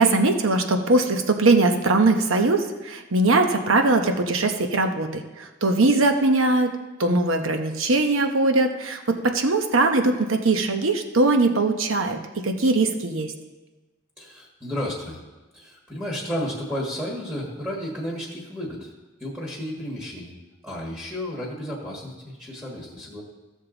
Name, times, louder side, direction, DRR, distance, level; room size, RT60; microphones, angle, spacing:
voice 1, 0.0-6.7 7.0-12.2 12.4-13.3, right 2 dB, 80° right, 5 dB, 0.9 m, -21 dB
voice 2, 14.2-15.2 15.5-18.9 19.2-20.3 20.6-23.2, equal, 5° right, -3 dB, 1.6 m, -32 dB
15.5 x 6.5 x 3.9 m, 1.2 s
head